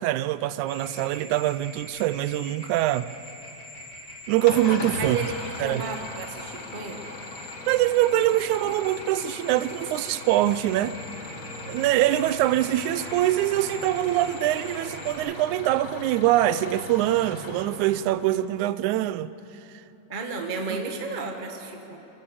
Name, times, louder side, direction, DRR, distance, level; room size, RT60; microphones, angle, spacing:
voice 1, 0.0-3.1 4.3-5.2 5.6-5.8 7.7-11.0 11.7-19.3, right 14 dB, 85° right, 2.0 m, -24 dB
sound 1, 0.7-15.1, left 1 dB, 35° left, 4.8 m, -43 dB
Engine starting / Idling, 4.5-18.6, left 3 dB, 60° left, 0.8 m, -39 dB
voice 2, 5.0-7.0 20.1-22.0, right 3 dB, 35° right, 0.7 m, -33 dB
27.5 x 16.5 x 6.9 m
omnidirectional pair, 3.4 m